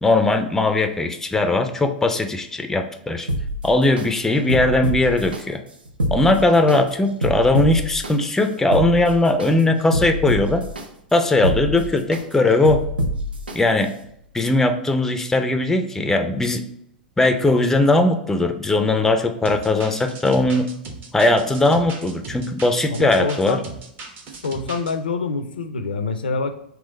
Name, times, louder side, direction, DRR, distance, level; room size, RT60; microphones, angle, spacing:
voice 1, 0.0-3.3 3.6-5.6 6.1-10.6 11.1-12.8 13.5-13.9 14.3-16.6 17.2-20.7 21.1-23.6, left 2 dB, 10° left, 7 dB, 0.4 m, -19 dB
sound 1, 3.3-4.1 4.5-5.4 5.9-6.8 7.2-8.1 8.6-9.5 9.9-10.8 11.3-12.2 12.6-13.6 14.0-14.1, equal, 85° right, 0.6 m, -25 dB
sound 2, 19.4-24.9, right 4 dB, 35° right, 0.8 m, -38 dB
voice 2, 22.9-23.7 24.4-26.5, left 4 dB, 80° left, 9 dB, 0.4 m, -26 dB
3.7 x 3.0 x 3.9 m, 0.74 s
figure-of-eight pair, 95°, 5 cm